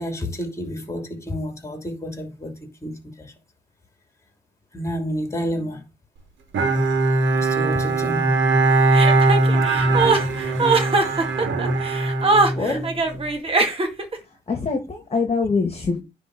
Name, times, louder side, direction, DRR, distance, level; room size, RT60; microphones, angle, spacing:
voice 1, 0.0-3.3 4.7-5.8 7.3-8.3 12.6-12.9, equal, 15° left, 2.9 m, -29 dB
Bowed string instrument, 6.5-13.2, right 2 dB, 70° right, 2.1 m, -20 dB
Chuckle chortle, 8.9-14.2, right 3 dB, 30° right, 2.1 m, -21 dB
voice 2, 9.6-10.2 14.5-16.0, left 4 dB, 30° left, 2.0 m, -25 dB
10.0 x 3.8 x 6.4 m
cardioid pair, 90°, 20 cm